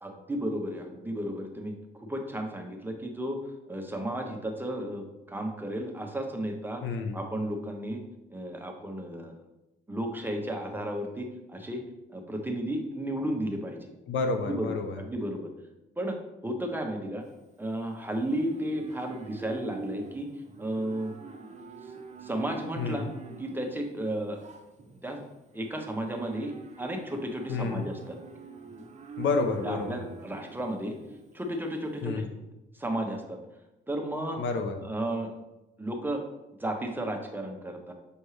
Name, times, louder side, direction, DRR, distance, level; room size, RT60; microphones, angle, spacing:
voice 1, 0.0-6.8 7.1-8.0 8.3-9.3 9.9-11.8 12.1-13.9 14.5-15.5 16.0-16.2 16.4-17.2 17.6-20.3 20.6-21.1 21.8-21.9 22.2-23.1 23.4-24.4 25.0-25.2 25.5-28.2 29.6-31.0 31.3-32.3 32.7-33.4 33.9-34.4 34.8-35.3 35.8-36.2 36.6-37.9, right 1 dB, 10° right, 2 dB, 0.9 m, -33 dB
voice 2, 6.8-7.2 14.1-15.0 22.8-23.1 27.5-27.8 29.2-30.0 32.0-32.3 34.4-34.8, left 4 dB, 75° left, 6 dB, 0.8 m, -29 dB
Livestock farm animals working animals, 17.2-32.0, right 3 dB, 35° right, 0.8 m, -45 dB
6.8 x 4.4 x 3.2 m, 0.95 s
cardioid pair, 90°, 20 cm